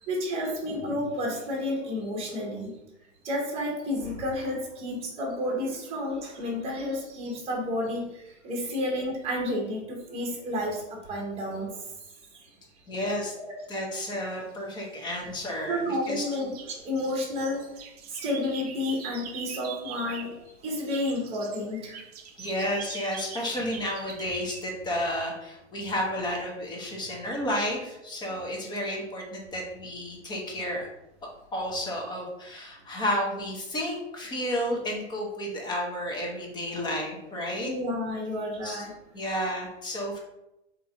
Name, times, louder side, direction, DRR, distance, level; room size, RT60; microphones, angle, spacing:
voice 1, 0.0-2.8 3.2-11.8 13.3-13.5 15.7-17.7 18.1-20.4 20.6-22.0 37.6-38.9, left 1 dB, 15° right, -2 dB, 1.2 m, -31 dB
voice 2, 12.9-13.3 13.7-15.8 16.1-16.2 22.4-30.9 31.5-37.7 38.6-38.8 39.1-40.2, equal, 10° left, -1 dB, 0.8 m, -31 dB
sound 1, 14.8-15.6 15.9-20.4 20.7-24.7, right 8 dB, 35° right, 0.4 m, -43 dB
3.9 x 3.0 x 3.6 m, 0.90 s
hypercardioid pair, 120°, 37 cm